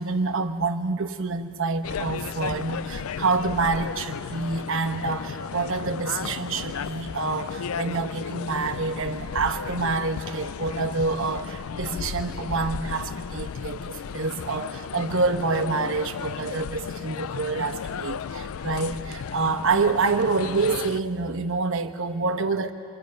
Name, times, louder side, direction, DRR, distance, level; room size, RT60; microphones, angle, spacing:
voice 1, 0.0-22.7, right 4 dB, 65° right, 6 dB, 1.1 m, -27 dB
sound 1, 1.8-21.0, left 6 dB, 80° left, 0.4 m, -34 dB
26.5 x 25.5 x 5.3 m, 2.3 s
head